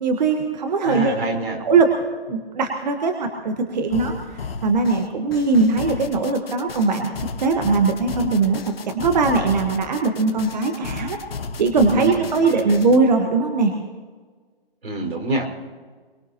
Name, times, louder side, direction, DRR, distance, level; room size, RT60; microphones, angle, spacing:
voice 1, 0.0-1.3 1.6-1.9 2.3-4.1 4.6-7.1 7.4-11.2 11.6-13.7, right 4 dB, 45° right, 4 dB, 1.4 m, -20 dB
voice 2, 0.8-1.6 11.9-12.8 14.8-15.5, right 1 dB, 85° right, 1 dB, 5.1 m, -27 dB
sound 1, 3.9-13.0, left 4 dB, 75° left, 1.4 m, -34 dB
23.0 x 21.5 x 2.9 m, 1.5 s
hypercardioid pair, 160°, 30 cm